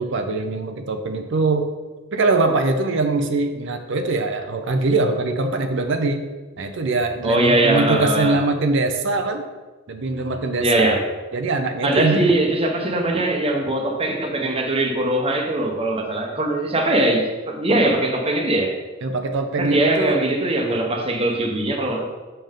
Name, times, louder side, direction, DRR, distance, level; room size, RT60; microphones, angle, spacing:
voice 1, 0.0-1.7 2.1-6.3 6.6-9.4 9.9-11.0 11.3-12.3 19.0-20.2, right 3 dB, 65° right, 6 dB, 0.6 m, -22 dB
voice 2, 7.2-8.4 10.6-11.0 11.8-18.7 19.6-22.0, right 1 dB, 30° right, 3 dB, 0.9 m, -21 dB
6.8 x 5.5 x 3.7 m, 1.3 s
head